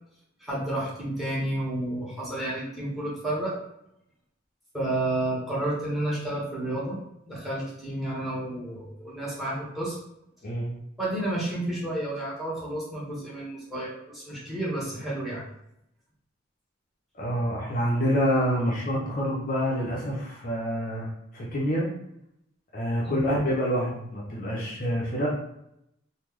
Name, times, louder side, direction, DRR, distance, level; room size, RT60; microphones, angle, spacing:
voice 1, 0.4-3.6 4.7-7.0 7.3-9.9 11.0-15.4 23.0-23.3, right 1 dB, ahead, -6 dB, 1.1 m, -31 dB
voice 2, 10.4-10.7 17.2-21.1 21.3-21.9 22.7-25.3, equal, 45° left, -3 dB, 0.7 m, -27 dB
3.1 x 2.3 x 3.7 m, 0.79 s
head